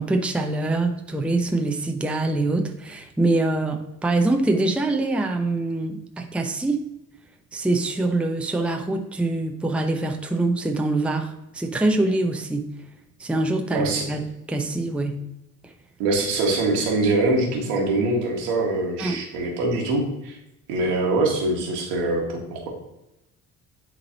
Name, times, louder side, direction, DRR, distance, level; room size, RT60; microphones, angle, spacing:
voice 1, 0.0-6.9 7.5-12.7 13.2-14.2 14.5-15.2 15.6-15.7 19.0-19.2, right 2 dB, 5° right, 4 dB, 0.7 m, -24 dB
voice 2, 13.7-14.0 16.0-20.4 20.7-22.7, right 2 dB, 70° right, -1 dB, 1.8 m, -23 dB
9.7 x 4.0 x 2.8 m, 0.88 s
figure-of-eight pair, 50°, 45 cm